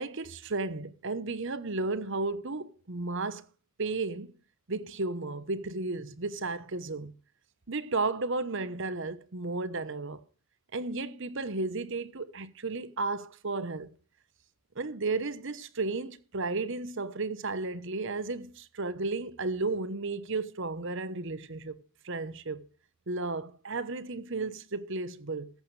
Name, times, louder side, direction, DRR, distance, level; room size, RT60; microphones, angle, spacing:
voice 1, 0.0-3.4 3.8-4.3 4.7-7.1 7.7-10.2 10.7-13.9 14.8-22.6 23.1-25.5, right 3 dB, 55° right, 1.0 m, -33 dB
14.5 x 13.5 x 3.3 m
head